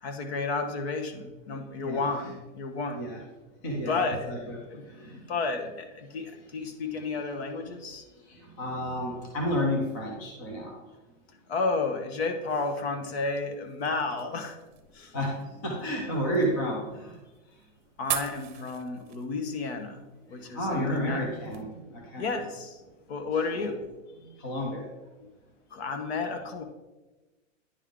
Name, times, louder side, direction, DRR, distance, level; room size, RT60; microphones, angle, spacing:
voice 1, 0.0-3.1 3.9-4.3 4.7-4.8 5.1-8.0 11.5-14.6 14.9-15.2 18.0-21.3 22.2-22.8 23.1-23.8 25.2-25.3 25.7-26.6, left 3 dB, 55° left, 7 dB, 1.0 m, -32 dB
voice 2, 1.8-2.1 2.9-3.2 3.6-5.2 7.1-10.8 15.1-17.2 20.3-22.3 23.5-23.7 24.2-25.0 26.2-26.4, equal, 20° left, 0 dB, 0.4 m, -32 dB
sound 1, 13.2-21.6, right 12 dB, 50° right, 0.7 m, -42 dB
9.9 x 3.5 x 3.6 m, 1.1 s
supercardioid pair, 165°, 38 cm